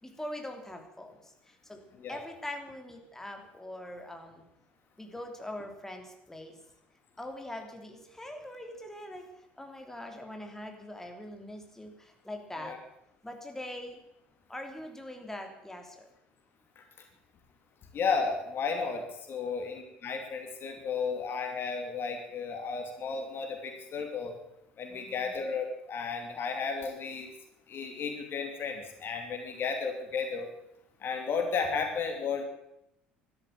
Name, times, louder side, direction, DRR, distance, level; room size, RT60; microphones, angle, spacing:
voice 1, 0.0-1.8 2.1-4.4 5.0-6.6 7.2-12.8 13.2-14.0 14.5-16.1 24.9-25.3, left 1 dB, 10° left, 3 dB, 3.2 m, -42 dB
voice 2, 17.9-19.0 19.3-24.4 24.8-27.3 27.7-30.5 31.0-32.4, left 5 dB, 45° left, 4 dB, 2.7 m, -33 dB
13.0 x 12.0 x 8.9 m, 0.80 s
figure-of-eight pair, 60°, 5 cm